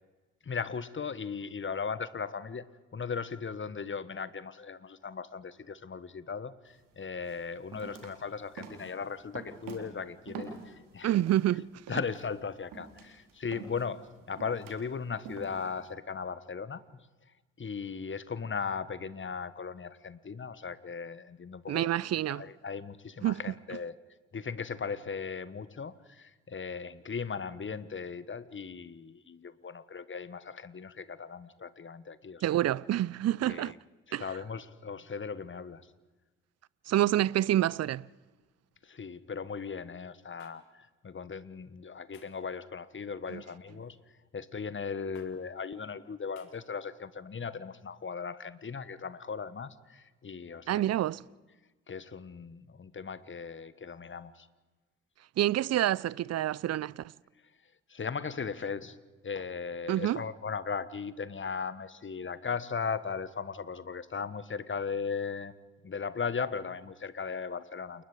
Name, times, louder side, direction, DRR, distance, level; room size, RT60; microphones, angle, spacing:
voice 1, 0.4-2.7 2.9-11.1 11.9-16.8 17.6-21.9 22.3-24.0 24.3-32.4 33.5-33.7 34.1-35.9 38.8-44.0 44.3-51.0 51.9-54.5 57.9-59.0 59.2-65.5 65.8-68.0, left 5 dB, 35° left, 1.5 m, -37 dB
sound 1, 6.7-6.8 7.2-11.5 11.9-15.9, right 5 dB, 70° right, 3.6 m, -46 dB
voice 2, 11.0-11.7 21.7-22.5 23.2-23.4 32.4-33.7 34.1-34.3 36.9-38.1 43.3-43.4 50.7-51.2 55.4-57.0 59.9-60.2, right 13 dB, 45° right, 0.6 m, -27 dB
sound 2, 40.4-40.6 42.1-42.4 43.7-44.0 45.2-45.3 46.4-46.5, left 10 dB, 80° left, 2.2 m, -58 dB
28.5 x 20.5 x 5.0 m
hypercardioid pair, 40°, 35 cm